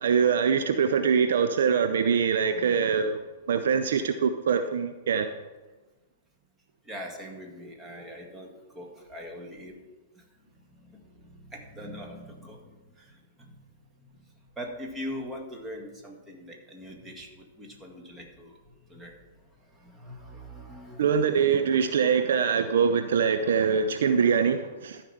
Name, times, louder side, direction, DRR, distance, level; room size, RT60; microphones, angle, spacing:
voice 1, 0.0-3.2 3.5-5.3 21.0-25.0, right 6 dB, 60° right, 8 dB, 0.6 m, -23 dB
voice 2, 2.1-3.1 6.8-9.8 10.2-10.3 10.6-13.6 14.0-14.2 14.6-18.6 18.9-19.3 19.6-21.2, equal, 10° right, 1 dB, 1.9 m, -42 dB
13.0 x 5.0 x 5.9 m, 1.2 s
figure-of-eight pair, 105°, 0 cm